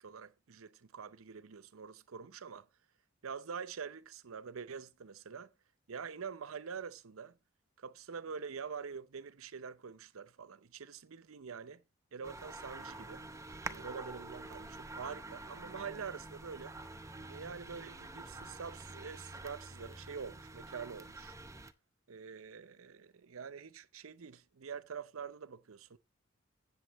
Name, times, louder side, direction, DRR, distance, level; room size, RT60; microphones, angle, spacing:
voice 1, 0.0-2.7 3.2-5.5 5.9-7.4 7.8-11.8 12.1-13.2 13.7-16.8 17.3-21.3 22.1-26.0, right 6 dB, 85° right, 0.6 m, -45 dB
sound 1, 12.2-21.7, right 2 dB, 15° right, 0.7 m, -47 dB
15.5 x 7.1 x 3.0 m
head